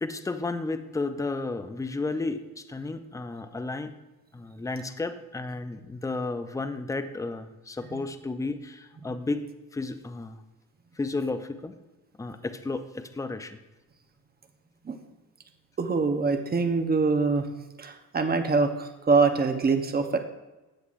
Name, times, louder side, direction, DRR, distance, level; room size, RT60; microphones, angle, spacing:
voice 1, 0.0-3.9 4.3-9.5 9.7-10.4 11.0-11.7 12.2-13.6, left 3 dB, 10° left, 9 dB, 0.6 m, -32 dB
voice 2, 15.8-17.5 17.8-20.2, right 4 dB, 25° right, 6 dB, 1.0 m, -24 dB
13.0 x 8.0 x 2.6 m, 1.1 s
cardioid pair, 100°, 37 cm